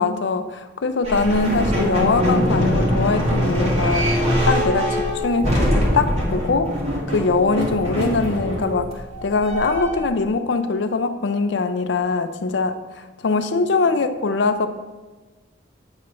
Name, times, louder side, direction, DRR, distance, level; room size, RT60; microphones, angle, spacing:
voice 1, 0.0-6.7 7.1-14.7, left 4 dB, 70° left, 8 dB, 0.5 m, -22 dB
sound 1, 1.0-10.1, equal, 35° right, 1.4 m, -22 dB
8.6 x 3.1 x 5.9 m, 1.2 s
head